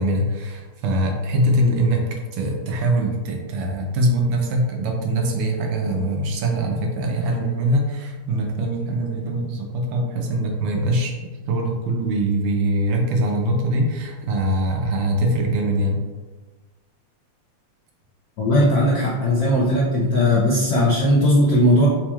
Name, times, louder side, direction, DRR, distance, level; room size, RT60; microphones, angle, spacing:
voice 1, 0.0-11.1 11.5-16.0, right 1 dB, 75° right, 1 dB, 1.2 m, -22 dB
voice 2, 18.4-21.9, left 1 dB, 75° left, -6 dB, 0.8 m, -18 dB
4.2 x 3.0 x 2.2 m, 1.3 s
omnidirectional pair, 2.4 m